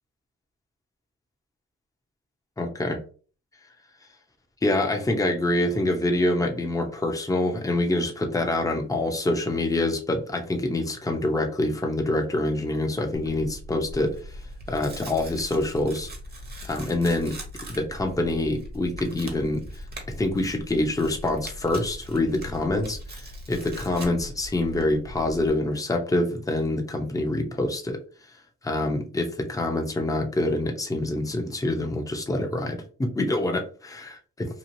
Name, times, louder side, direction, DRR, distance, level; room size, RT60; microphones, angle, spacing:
voice 1, 2.6-3.0 4.6-14.4 14.7-16.1 16.6-17.3 17.7-19.6 20.2-28.0 28.6-32.8 33.1-34.0, left 2 dB, 10° left, 2 dB, 0.7 m, -26 dB
Tearing, 13.1-25.5, equal, 30° right, 1.0 m, -40 dB
3.0 x 2.4 x 2.6 m, 0.39 s
cardioid pair, 90°, 30 cm